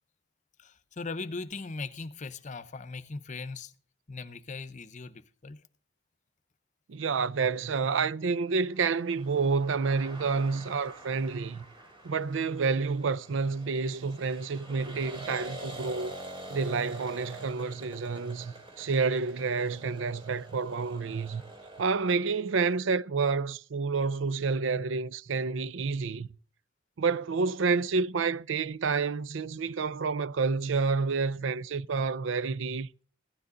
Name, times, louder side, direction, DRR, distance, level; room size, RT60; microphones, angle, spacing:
voice 1, 0.6-3.7 4.1-5.6, left 3 dB, 40° left, 0.8 m, -39 dB
voice 2, 6.9-11.6 12.0-16.2 16.5-21.4 21.8-26.3 27.0-32.9, right 4 dB, 75° right, 0.5 m, -29 dB
sound 1, 8.4-21.9, right 1 dB, 25° right, 3.2 m, -46 dB
15.5 x 12.5 x 3.8 m
head